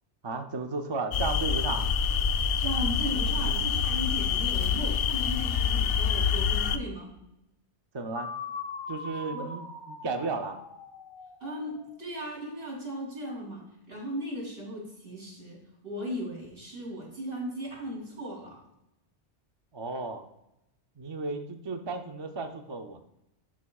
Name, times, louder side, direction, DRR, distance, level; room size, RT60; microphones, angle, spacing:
voice 1, 0.2-1.9 7.9-8.3 8.9-9.6 9.9-10.6 19.7-20.2 21.0-23.0, right 3 dB, 35° right, 5 dB, 0.4 m, -34 dB
sound 1, 1.1-6.8, left 6 dB, 65° left, 0.7 m, -26 dB
voice 2, 2.6-7.1 9.3-9.5 11.4-18.6, equal, 55° right, -3 dB, 3.4 m, -37 dB
sound 2, 8.2-12.0, left 4 dB, 30° left, 0.6 m, -41 dB
11.5 x 6.1 x 2.3 m, 0.85 s
omnidirectional pair, 1.2 m